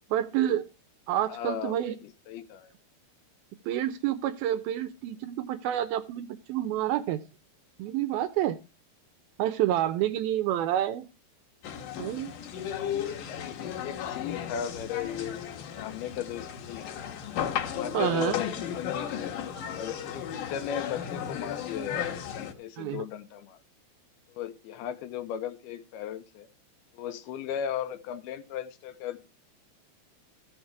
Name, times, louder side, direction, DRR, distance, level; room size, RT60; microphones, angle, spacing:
voice 1, 0.1-0.6 1.1-2.0 3.7-7.2 7.8-8.6 9.4-11.1 12.0-12.3 17.9-18.4 22.8-23.0, right 12 dB, 75° right, 11 dB, 2.3 m, -28 dB
voice 2, 1.3-1.8 2.3-2.7 13.3-15.5 15.8-16.9 17.7-19.3 19.8-23.6 24.3-26.5 26.9-29.2, left 9 dB, 75° left, 10 dB, 2.6 m, -36 dB
sound 1, 11.6-22.5, left 9 dB, 60° left, 2.7 m, -35 dB
14.5 x 6.4 x 4.7 m, 0.29 s
omnidirectional pair, 4.8 m